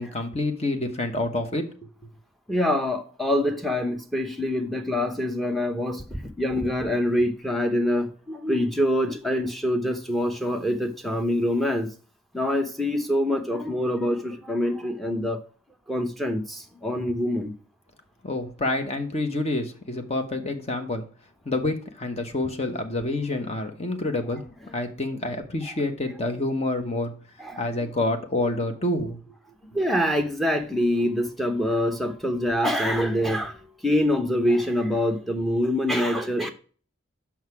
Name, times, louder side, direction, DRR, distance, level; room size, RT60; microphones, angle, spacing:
voice 1, 0.0-1.9 18.2-21.0 21.4-24.4 24.7-27.1 27.6-29.3, left 2 dB, 30° left, 1.0 m, -28 dB
voice 2, 2.5-11.9 12.3-15.4 15.9-17.5 27.4-27.7 29.7-36.5, left 1 dB, ahead, 0.8 m, -25 dB
6.4 x 5.9 x 4.7 m
head